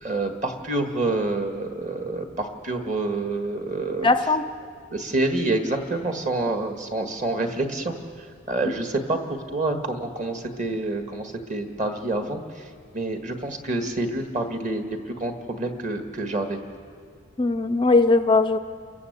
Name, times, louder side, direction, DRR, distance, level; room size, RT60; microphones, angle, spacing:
voice 1, 0.0-4.1 4.9-12.7 12.9-16.6, right 2 dB, 35° right, 5 dB, 1.7 m, -27 dB
voice 2, 4.0-4.4 17.4-18.6, left 3 dB, 25° left, 10 dB, 0.5 m, -19 dB
28.5 x 14.5 x 8.0 m, 2.1 s
head